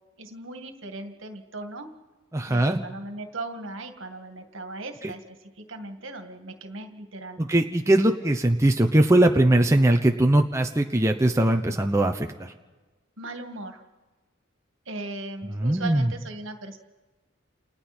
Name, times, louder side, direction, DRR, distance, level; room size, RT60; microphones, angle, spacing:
voice 1, 0.2-1.9 2.4-7.4 13.2-13.8 14.9-16.8, right 2 dB, 65° right, 5 dB, 2.1 m, -38 dB
voice 2, 2.3-2.8 7.4-12.5 15.6-16.1, right 1 dB, 15° right, 3 dB, 0.8 m, -21 dB
30.0 x 29.0 x 4.4 m, 1.3 s
head